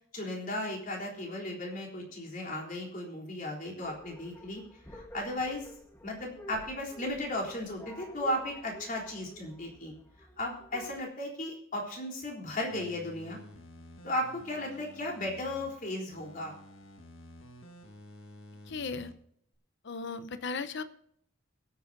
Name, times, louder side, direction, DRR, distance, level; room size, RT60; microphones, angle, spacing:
voice 1, 0.1-4.6 4.9-5.7 6.0-9.9 10.4-13.4 14.0-16.5, left 1 dB, 45° left, -1 dB, 3.7 m, -35 dB
sound 1, 3.8-11.0, equal, 10° left, 1.3 m, -50 dB
sound 2, 12.7-15.7 16.1-19.1 19.5-19.6, left 1 dB, 75° left, 1.6 m, -51 dB
voice 2, 18.7-19.1 19.8-20.8, left 4 dB, 60° left, 12 dB, 0.8 m, -36 dB
22.5 x 8.8 x 2.7 m, 0.67 s
head